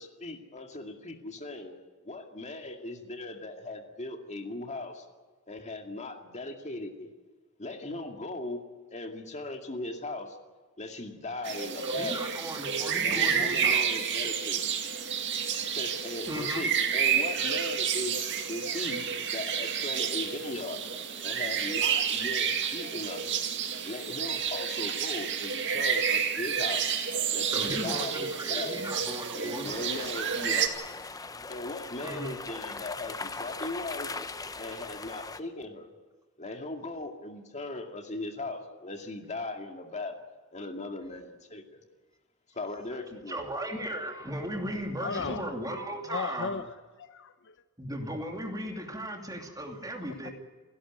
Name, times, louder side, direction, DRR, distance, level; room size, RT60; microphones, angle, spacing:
voice 1, 0.0-1.7 2.0-5.0 5.5-7.1 7.6-8.6 8.9-10.4 10.8-12.3 13.0-14.7 15.7-20.8 21.2-23.4 23.8-26.8 27.3-28.8 29.3-30.7 31.5-34.1 34.6-35.9 36.4-40.2 40.5-41.8 42.5-43.4, left 2 dB, 35° left, 2.2 m, -38 dB
sound 1, 11.4-30.7, right 7 dB, 55° right, 2.1 m, -30 dB
voice 2, 11.8-13.9 16.3-16.6 27.5-29.7 32.0-32.3 43.3-46.5 47.8-50.3, right 1 dB, 15° right, 2.6 m, -36 dB
sound 2, 29.6-35.4, left 3 dB, 15° left, 0.7 m, -40 dB
voice 3, 45.0-45.5 46.0-47.5 50.0-50.3, left 5 dB, 60° left, 0.8 m, -36 dB
29.5 x 11.5 x 9.3 m
head